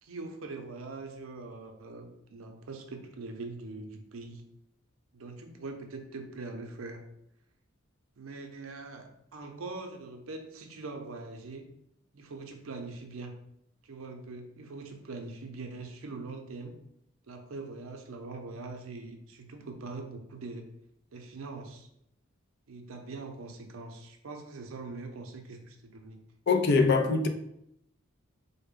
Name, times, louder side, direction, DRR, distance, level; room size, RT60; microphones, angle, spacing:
voice 1, 0.0-4.4 5.1-7.0 8.2-11.6 12.1-13.4 13.8-16.7 17.3-20.7 21.1-21.9 22.7-26.2, right 3 dB, 80° right, 0.6 m, -42 dB
voice 2, 26.5-27.3, left 4 dB, 55° left, 0.4 m, -23 dB
4.1 x 2.1 x 3.6 m
head